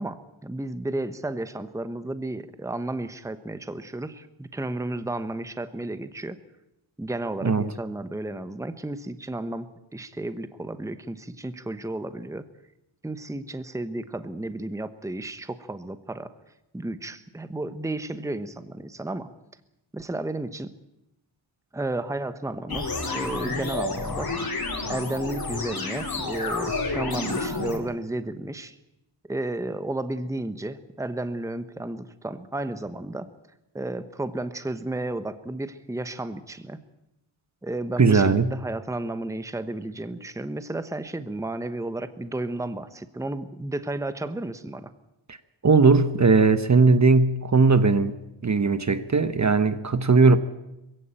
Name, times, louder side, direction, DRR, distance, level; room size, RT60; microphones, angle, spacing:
voice 1, 0.0-6.4 7.0-12.4 13.0-16.3 16.7-19.3 19.9-20.7 21.7-24.3 24.9-28.8 29.3-33.3 33.7-36.8 37.6-44.9, right 2 dB, 5° right, 11 dB, 1.0 m, -33 dB
sound 1, 22.7-27.8, left 3 dB, 45° left, 3.5 m, -30 dB
voice 2, 38.0-38.5 45.3-45.4 45.6-48.2 48.4-50.4, right 4 dB, 35° right, 11 dB, 1.0 m, -18 dB
21.5 x 16.0 x 8.9 m, 0.90 s
wide cardioid pair, 110°, 49 cm